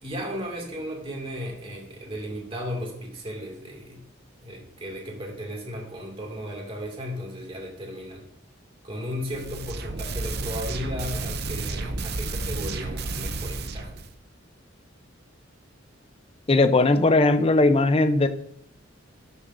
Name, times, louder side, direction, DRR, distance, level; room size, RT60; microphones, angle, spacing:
voice 1, 0.0-4.0 4.4-8.2 8.8-14.0, equal, 30° right, 0 dB, 2.3 m, -35 dB
sound 1, 9.2-14.1, right 3 dB, 55° right, 0.7 m, -32 dB
voice 2, 16.5-18.3, left 2 dB, 30° left, 10 dB, 0.6 m, -19 dB
12.0 x 6.6 x 2.6 m, 0.73 s
head